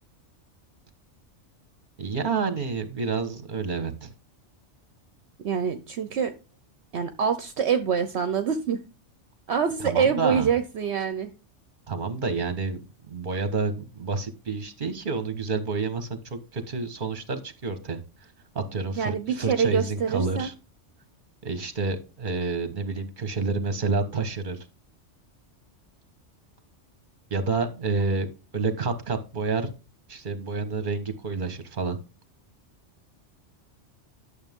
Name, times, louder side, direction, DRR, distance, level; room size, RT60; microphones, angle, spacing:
voice 1, 2.0-4.1 9.8-10.5 11.9-12.8 13.1-18.0 18.5-20.5 21.4-24.6 27.3-29.7 30.1-32.0, right 4 dB, 45° right, 9 dB, 1.4 m, -29 dB
voice 2, 5.4-6.3 6.9-8.8 9.5-11.3 19.0-20.5, right 7 dB, 65° right, 9 dB, 1.0 m, -25 dB
11.5 x 6.8 x 3.6 m, 0.33 s
omnidirectional pair, 1.2 m